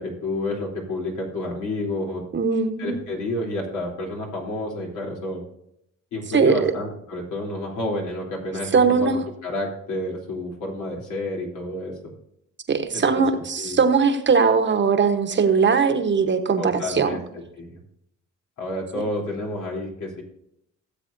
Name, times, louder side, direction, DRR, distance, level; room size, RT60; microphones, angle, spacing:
voice 1, 0.0-2.2 2.8-5.4 6.1-11.9 12.9-13.8 16.6-17.8 18.6-20.2, left 2 dB, 80° left, -2 dB, 3.3 m, -30 dB
voice 2, 2.3-2.9 6.3-6.6 8.7-9.2 12.7-17.2, right 5 dB, 40° right, 7 dB, 1.1 m, -20 dB
17.0 x 7.6 x 2.6 m, 0.76 s
cardioid pair, 90°, 30 cm